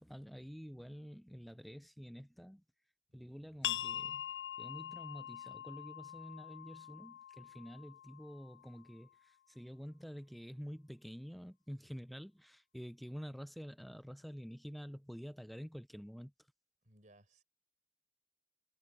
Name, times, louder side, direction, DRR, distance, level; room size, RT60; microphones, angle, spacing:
voice 1, 0.0-2.6 3.1-4.3 4.6-16.3, equal, ahead, 0.5 m, -48 dB
voice 2, 3.1-3.7 16.8-17.4, right 1 dB, 45° right, 4.6 m, -65 dB
sound 1, 3.6-9.0, left 11 dB, 70° left, 0.4 m, -43 dB
head